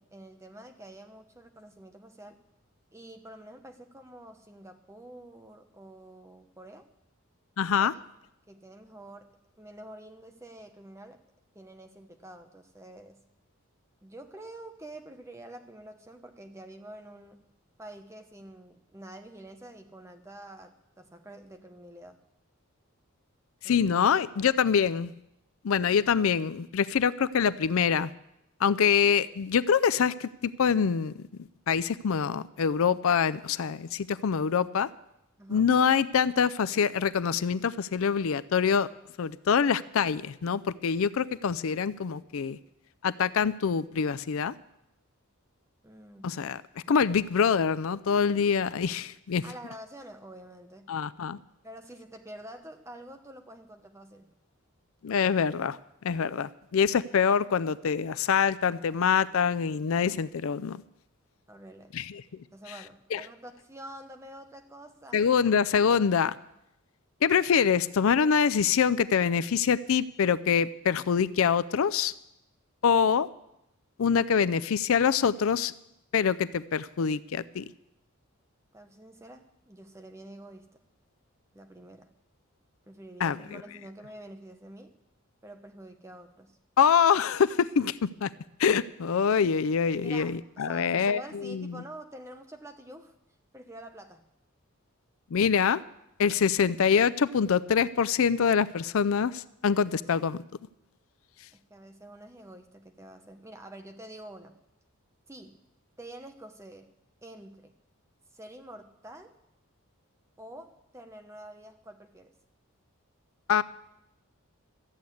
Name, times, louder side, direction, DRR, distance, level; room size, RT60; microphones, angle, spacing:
voice 1, 0.0-2.4 2.9-6.9 7.8-8.0 8.5-11.2 11.5-13.2 14.0-17.5 17.8-22.2 23.6-24.0 35.4-35.7 45.8-46.4 49.4-50.9 51.6-54.3 61.5-62.0 62.5-65.2 78.7-80.8 81.5-82.1 82.9-85.0 85.4-86.6 90.0-93.2 93.5-94.2 101.5-104.6 105.3-105.6 106.0-106.9 107.2-107.7 108.3-109.4 110.4-112.3, right 1 dB, 15° right, 6 dB, 0.9 m, -47 dB
voice 2, 7.6-7.9 23.6-25.1 25.6-28.1 28.6-31.1 31.7-34.9 35.5-38.9 39.2-42.6 43.0-44.5 46.2-46.6 46.9-49.4 50.9-51.4 55.0-55.8 56.0-60.8 61.9-62.2 63.1-63.2 65.1-66.4 67.2-72.1 72.8-73.3 74.0-75.7 76.1-77.7 83.2-83.6 86.8-88.3 88.6-91.8 95.3-95.8 96.2-100.4 113.5-113.6, left 7 dB, 70° left, 16 dB, 0.4 m, -25 dB
14.0 x 7.8 x 8.4 m, 0.84 s
head